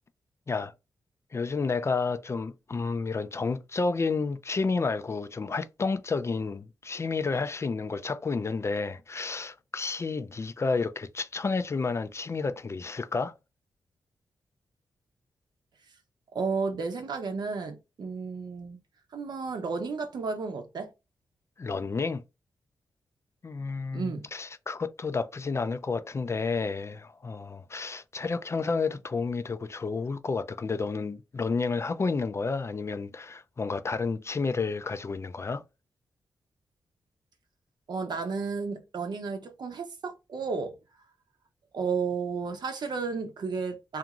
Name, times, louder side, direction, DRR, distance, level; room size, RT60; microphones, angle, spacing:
voice 1, 1.3-13.3 21.6-22.2 23.4-35.6, left 4 dB, 35° left, 0.3 m, -30 dB
voice 2, 16.3-18.8 19.1-20.9 23.9-24.3 37.9-40.8 41.7-44.0, right 4 dB, 65° right, 0.7 m, -32 dB
2.5 x 2.4 x 2.9 m
cardioid pair, 55°, 8 cm